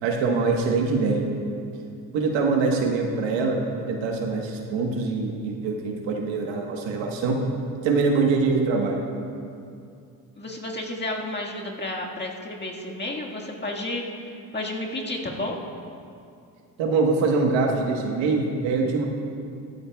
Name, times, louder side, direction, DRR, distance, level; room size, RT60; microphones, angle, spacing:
voice 1, 0.0-1.2 2.1-7.4 7.8-9.0 16.8-19.1, right 4 dB, 75° right, 1 dB, 1.4 m, -24 dB
voice 2, 10.4-14.0 14.5-15.6, left 1 dB, 25° left, -1 dB, 1.7 m, -31 dB
14.5 x 12.5 x 2.3 m, 2.5 s
supercardioid pair, 65°, 45 cm